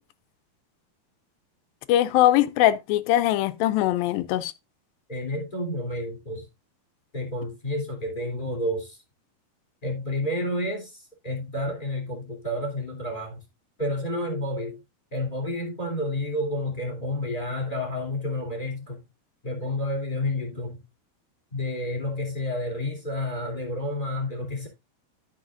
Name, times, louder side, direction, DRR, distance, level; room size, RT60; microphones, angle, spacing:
voice 1, 1.9-4.5, left 13 dB, 80° left, 2.2 m, -21 dB
voice 2, 5.1-6.5 7.1-9.0 9.8-13.4 13.8-14.8 15.1-19.0 19.4-20.8 21.5-24.7, left 1 dB, 15° left, 2.5 m, -30 dB
13.5 x 5.6 x 2.5 m
omnidirectional pair, 4.4 m